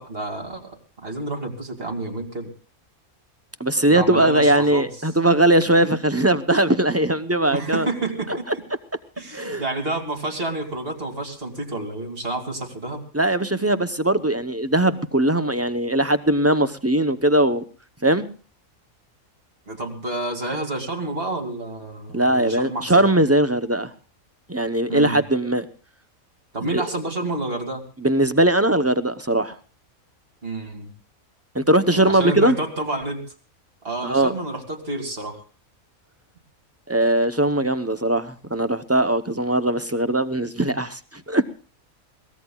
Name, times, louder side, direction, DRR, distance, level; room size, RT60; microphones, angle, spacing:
voice 1, 0.0-2.5 3.9-4.9 7.5-8.6 9.2-13.0 19.7-22.9 24.9-25.2 26.5-27.8 30.4-30.9 31.9-33.2 33.8-35.4, right 2 dB, 45° right, 3 dB, 2.9 m, -29 dB
voice 2, 3.6-7.9 8.5-8.6 9.3-9.6 13.1-17.6 18.0-18.3 22.1-23.9 24.5-25.7 26.7-26.8 28.0-29.6 31.5-32.6 34.0-34.3 36.9-41.4, right 1 dB, 15° right, 11 dB, 0.6 m, -20 dB
23.0 x 18.5 x 2.3 m, 0.39 s
omnidirectional pair, 1.5 m